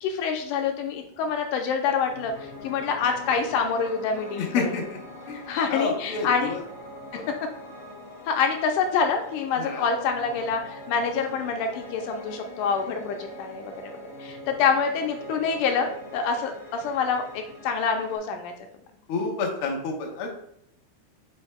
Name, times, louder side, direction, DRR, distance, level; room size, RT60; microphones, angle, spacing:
voice 1, 0.0-4.7 5.5-6.5 8.3-18.5, left 5 dB, 85° left, 4 dB, 2.2 m, -26 dB
Piano, 2.0-18.2, equal, 40° left, 2.1 m, -42 dB
voice 2, 4.4-5.0 5.3-6.6 7.1-7.3 9.5-9.9 11.1-11.2 19.1-20.4, left 4 dB, 60° left, 0 dB, 1.5 m, -30 dB
7.8 x 5.4 x 2.2 m, 0.72 s
omnidirectional pair, 3.8 m